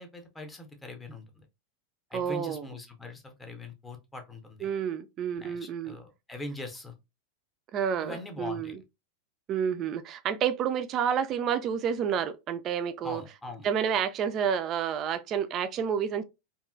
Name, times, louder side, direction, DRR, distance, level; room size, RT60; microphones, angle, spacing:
voice 1, 0.0-1.5 2.1-4.7 5.4-6.9 8.0-8.8 13.0-13.7, left 2 dB, 10° left, 0.6 m, -42 dB
voice 2, 2.1-2.7 4.6-6.0 7.7-8.8 9.5-13.2 13.6-16.2, right 8 dB, 30° right, 0.3 m, -29 dB
2.8 x 2.4 x 2.4 m
figure-of-eight pair, 90°, 0 cm